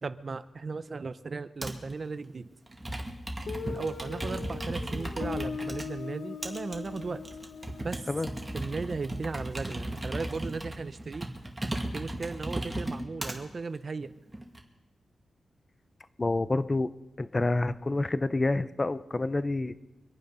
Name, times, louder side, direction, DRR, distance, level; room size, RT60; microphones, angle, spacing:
voice 1, 0.0-2.5 3.6-7.3 7.8-8.0 8.5-11.3 11.9-14.1, right 4 dB, 40° right, 13 dB, 0.6 m, -36 dB
Computer keyboard, 1.6-1.9 2.7-5.9 6.4-13.4 14.0-14.6, right 1 dB, 15° right, 2.0 m, -36 dB
Guitar, 3.5-10.1, left 6 dB, 65° left, 1.1 m, -41 dB
voice 2, 16.2-16.9 17.2-19.8, left 2 dB, 25° left, 14 dB, 0.6 m, -28 dB
25.0 x 9.2 x 5.5 m, 1.1 s
wide cardioid pair, 125°, 0 cm